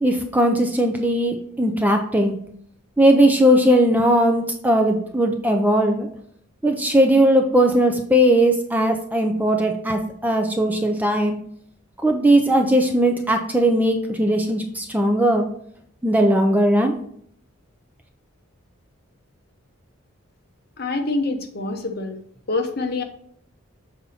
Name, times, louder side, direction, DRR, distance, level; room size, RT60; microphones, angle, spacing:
voice 1, 0.0-2.4 3.0-6.1 6.6-11.4 12.0-15.5 16.0-17.0, right 1 dB, 10° right, 4 dB, 0.4 m, -18 dB
voice 2, 20.8-22.2 22.5-23.0, left 3 dB, 45° left, 4 dB, 0.8 m, -25 dB
7.0 x 4.1 x 4.1 m, 0.66 s
head